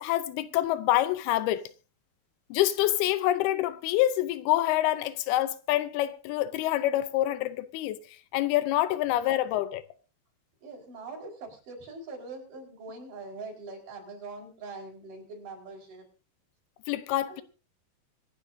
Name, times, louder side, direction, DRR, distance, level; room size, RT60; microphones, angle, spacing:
voice 1, 0.0-1.6 2.5-8.0 8.3-9.8 16.9-17.4, left 14 dB, 90° left, 2.7 m, -26 dB
voice 2, 10.6-16.1 17.3-17.4, right 3 dB, 55° right, 5.9 m, -43 dB
25.5 x 11.0 x 2.7 m
omnidirectional pair, 4.4 m